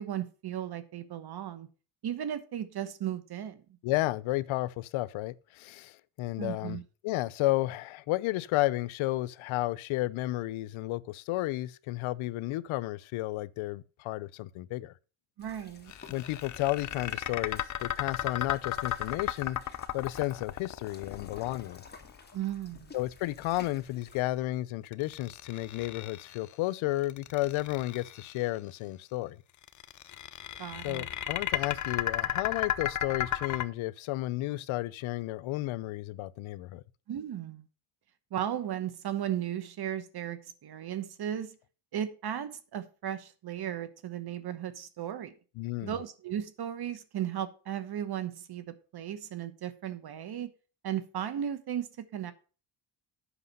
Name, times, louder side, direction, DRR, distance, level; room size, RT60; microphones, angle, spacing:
voice 1, 0.0-1.7 2.0-3.6 6.4-6.8 15.4-15.9 22.3-22.9 30.6-31.0 37.1-37.7 38.3-41.6 41.9-45.3 45.8-50.5 50.8-52.3, right 10 dB, 50° right, 1.1 m, -36 dB
voice 2, 3.8-6.8 7.0-14.9 16.1-21.8 22.9-29.4 30.8-36.8 45.6-46.0, left 17 dB, 75° left, 0.7 m, -32 dB
sound 1, 15.4-24.2, left 4 dB, 20° left, 1.9 m, -53 dB
sound 2, 15.9-22.1 24.9-26.5 27.0-28.4 29.6-33.6, left 10 dB, 40° left, 0.6 m, -34 dB
8.2 x 5.8 x 5.4 m
cardioid pair, 105°, 48 cm